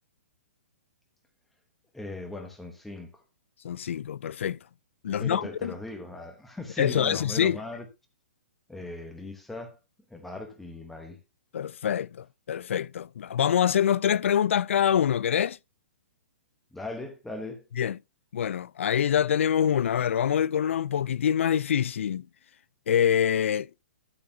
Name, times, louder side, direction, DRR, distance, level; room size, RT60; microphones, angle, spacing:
voice 1, 1.9-3.2 5.1-7.8 8.7-9.8 10.1-11.2 16.7-17.6, left 2 dB, ahead, 1.0 m, -39 dB
voice 2, 3.6-4.6 5.0-5.7 6.8-7.6 11.5-15.6 17.8-18.0 18.3-22.2 22.9-23.7, left 9 dB, 65° left, 0.3 m, -25 dB
12.5 x 6.7 x 2.7 m
hypercardioid pair, 175°, 7 cm